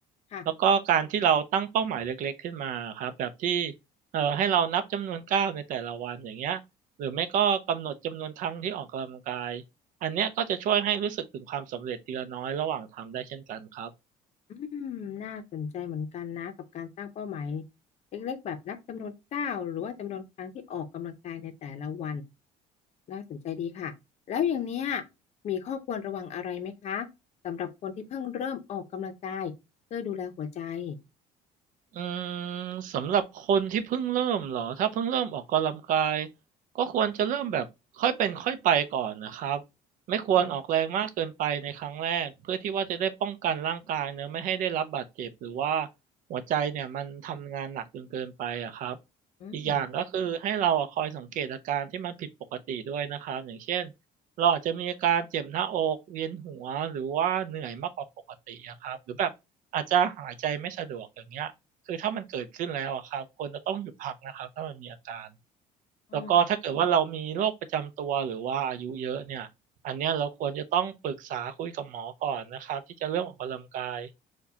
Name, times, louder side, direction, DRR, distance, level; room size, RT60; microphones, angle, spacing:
voice 1, 0.6-3.7 4.1-6.6 7.0-9.6 10.0-13.9 31.9-36.3 36.7-37.7 37.9-39.6 40.1-45.9 46.3-49.0 49.5-52.3 52.7-53.9 54.4-57.9 58.5-59.3 59.7-61.5 61.9-65.3 66.1-69.5 69.8-74.1, right 8 dB, 60° right, 0.5 m, -29 dB
voice 2, 14.5-17.6 18.1-22.2 23.1-23.9 24.3-25.0 25.4-27.1 27.4-29.5 29.9-31.0 40.4-40.5 49.4-49.8 66.1-66.3, left 8 dB, 45° left, 0.6 m, -34 dB
4.5 x 2.2 x 2.7 m
cardioid pair, 145°, 16 cm